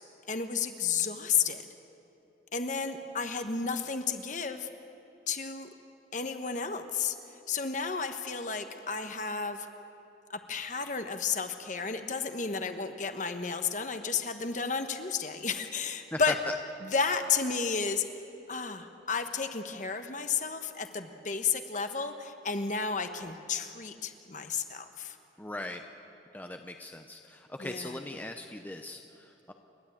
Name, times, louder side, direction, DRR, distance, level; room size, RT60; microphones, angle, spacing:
voice 1, 0.3-1.6 2.5-4.7 5.3-5.7 6.1-7.2 7.5-9.7 10.3-16.4 16.8-18.0 18.5-25.2 27.6-28.0, left 5 dB, 40° left, 7 dB, 1.2 m, -32 dB
voice 2, 16.1-16.5 25.4-25.8 26.3-29.5, left 1 dB, 10° left, 5 dB, 0.7 m, -39 dB
29.0 x 11.5 x 8.8 m, 2.9 s
head